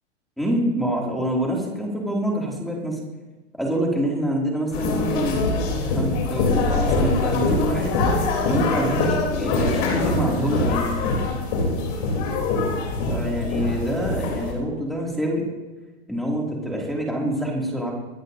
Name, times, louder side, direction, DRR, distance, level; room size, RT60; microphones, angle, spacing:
voice 1, 0.4-3.0 3.6-5.4 5.9-7.9 8.4-9.1 9.3-10.9 13.1-15.4 16.1-17.9, right 1 dB, ahead, -3 dB, 2.3 m, -26 dB
sound 1, 4.7-14.5, left 3 dB, 45° left, 3.3 m, -23 dB
24.5 x 9.4 x 2.6 m, 1.2 s
hypercardioid pair, 145°, 34 cm